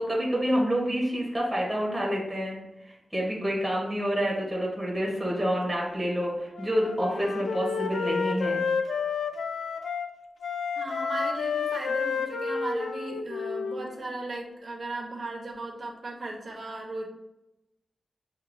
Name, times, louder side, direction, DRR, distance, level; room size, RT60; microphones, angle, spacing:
voice 1, 0.0-2.6 2.8-8.6, equal, 5° right, -4 dB, 1.1 m, -28 dB
Wind instrument woodwind instrument, 6.5-10.1 10.4-14.2, left 5 dB, 90° left, 0.4 m, -30 dB
voice 2, 10.8-17.1, right 2 dB, 50° right, -2 dB, 1.0 m, -36 dB
6.6 x 2.6 x 2.6 m, 0.92 s
wide cardioid pair, 150°, 0 cm